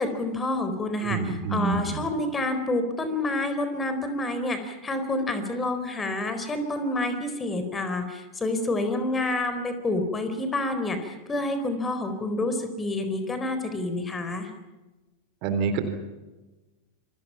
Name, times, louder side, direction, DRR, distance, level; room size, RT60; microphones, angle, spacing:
voice 1, 0.0-14.5, left 2 dB, 15° left, 8 dB, 4.2 m, -28 dB
voice 2, 1.0-2.0 15.4-15.8, right 5 dB, 45° right, 9 dB, 3.7 m, -27 dB
28.5 x 25.0 x 5.8 m, 1.1 s
figure-of-eight pair, 90°, 0 cm